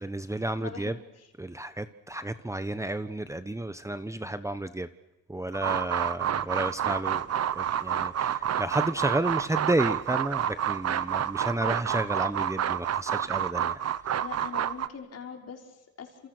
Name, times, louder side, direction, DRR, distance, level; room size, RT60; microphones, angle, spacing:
voice 1, 0.0-1.0 1.4-4.9 5.3-7.3 7.5-13.8, right 1 dB, 10° right, 11 dB, 1.2 m, -31 dB
voice 2, 0.6-1.3 14.1-16.3, left 6 dB, 55° left, 2 dB, 5.7 m, -43 dB
sound 1, 5.5-14.9, right 10 dB, 55° right, 1.3 m, -29 dB
29.5 x 28.0 x 6.3 m, 0.97 s
cardioid pair, 90°, 30 cm